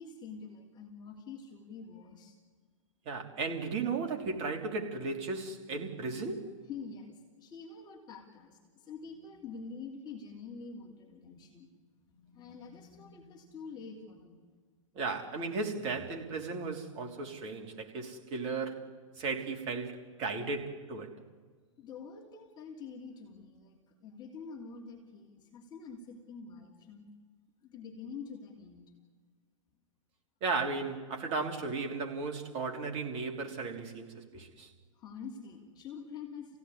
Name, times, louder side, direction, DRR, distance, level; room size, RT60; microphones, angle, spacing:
voice 1, 0.0-2.4 6.6-11.7 12.1-14.4 21.8-27.1 27.6-29.0 35.0-36.6, left 5 dB, 25° left, 3.1 m, -46 dB
voice 2, 3.0-6.5 14.9-21.1 30.4-34.7, right 4 dB, 35° right, 3.4 m, -35 dB
27.5 x 16.5 x 9.8 m
figure-of-eight pair, 115°, 18 cm